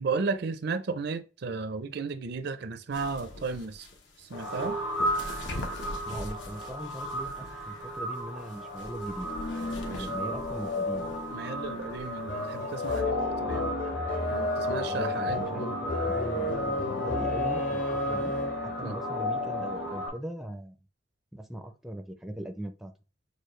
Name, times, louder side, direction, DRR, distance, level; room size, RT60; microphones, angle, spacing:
voice 1, 0.0-3.9 4.2-4.8 9.9-10.1 11.3-13.7 14.3-15.8 18.8-19.0, right 4 dB, 60° right, 0.5 m, -34 dB
sound 1, 2.9-13.0, left 1 dB, 70° left, 1.0 m, -44 dB
sound 2, 4.3-20.1, left 1 dB, 85° left, 1.5 m, -34 dB
voice 2, 6.0-9.3 9.7-11.1 14.9-18.3 18.6-20.7 21.3-22.9, right 1 dB, ahead, 0.4 m, -40 dB
sound 3, 12.3-18.7, left 1 dB, 45° left, 1.0 m, -32 dB
6.6 x 2.3 x 3.1 m
head